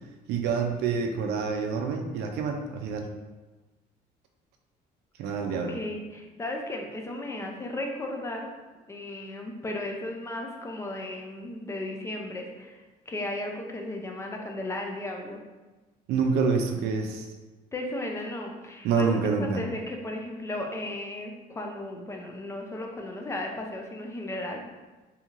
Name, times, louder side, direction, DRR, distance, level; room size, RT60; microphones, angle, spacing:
voice 1, 0.3-3.1 5.2-5.8 16.1-17.3 18.8-19.6, right 5 dB, 80° right, 4 dB, 0.4 m, -27 dB
voice 2, 5.5-8.5 8.9-12.8 13.1-15.4 17.7-24.6, left 1 dB, 15° left, 1 dB, 0.4 m, -35 dB
3.0 x 2.7 x 2.5 m, 1.2 s
cardioid pair, 110°, 17 cm